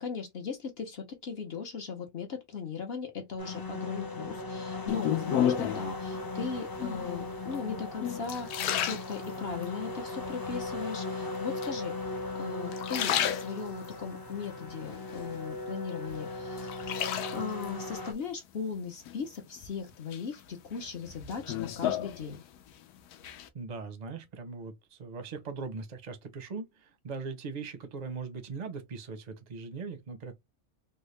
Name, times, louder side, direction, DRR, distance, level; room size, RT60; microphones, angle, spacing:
voice 1, 0.0-12.0 12.3-17.0 17.3-22.4, left 6 dB, 50° left, 0.8 m, -38 dB
sound 1, 3.4-18.1, left 2 dB, 35° left, 0.3 m, -38 dB
sound 2, 4.9-5.9 6.7-7.2 7.7-9.7 10.2-10.8 11.6-12.3 12.6-14.0 14.4-15.7 16.1-17.7 19.1-19.7 20.1-22.7 23.0-23.5, left 10 dB, 85° left, 1.1 m, -33 dB
voice 2, 23.5-30.3, right 4 dB, 40° right, 0.6 m, -40 dB
3.5 x 2.2 x 3.1 m
omnidirectional pair, 1.6 m